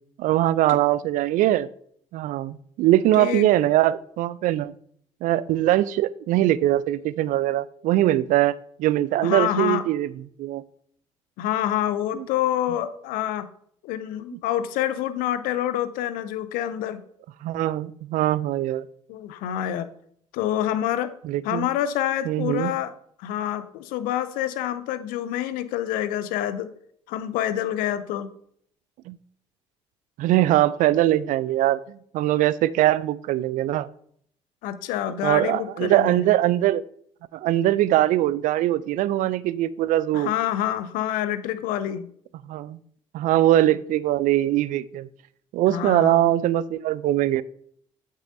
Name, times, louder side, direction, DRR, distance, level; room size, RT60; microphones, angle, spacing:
voice 1, 0.2-1.7 2.1-4.7 5.2-10.1 10.4-10.6 12.1-12.3 14.3-14.4 17.4-18.8 21.2-21.7 22.3-22.7 29.1-29.2 30.2-33.9 35.2-36.8 37.3-40.3 42.5-42.8 43.1-45.1 45.5-47.4, right 14 dB, 60° right, 19 dB, 0.4 m, -22 dB
voice 2, 3.2-3.5 9.2-9.8 11.4-13.5 13.8-17.0 19.1-19.9 20.3-21.1 21.4-22.9 23.2-26.7 27.1-28.3 34.6-36.2 40.1-42.0 45.7-46.3, left 11 dB, 65° left, 13 dB, 0.6 m, -27 dB
8.1 x 7.4 x 2.7 m, 0.65 s
figure-of-eight pair, 50°, 15 cm